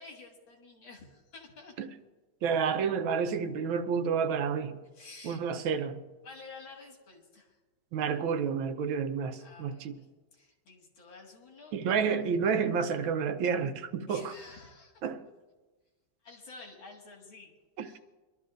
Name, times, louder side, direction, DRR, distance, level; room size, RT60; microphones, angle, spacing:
voice 1, 0.0-1.8 4.9-5.4 6.2-7.6 9.4-10.1 10.3-11.7 14.1-15.0 16.2-18.0, left 3 dB, 80° left, 2.7 m, -50 dB
voice 2, 2.4-4.8 5.2-6.0 7.9-9.9 11.7-14.3 15.0-15.2, right 6 dB, 80° right, 1.6 m, -30 dB
23.5 x 12.5 x 2.5 m
omnidirectional pair, 2.1 m